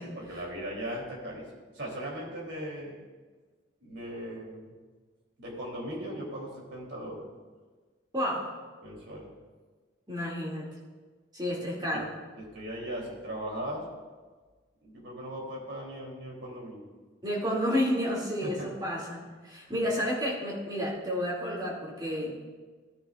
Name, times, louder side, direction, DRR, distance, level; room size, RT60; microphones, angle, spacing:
voice 1, 0.0-1.4 1.7-3.0 3.8-4.7 5.4-7.2 8.8-9.3 11.9-12.0 12.3-13.9 14.8-16.9 18.4-18.7, equal, 65° right, -3 dB, 3.2 m, -38 dB
voice 2, 8.1-8.5 10.1-10.7 11.3-12.1 17.2-22.3, equal, 20° right, -5 dB, 2.5 m, -31 dB
16.5 x 10.0 x 2.5 m, 1.4 s
head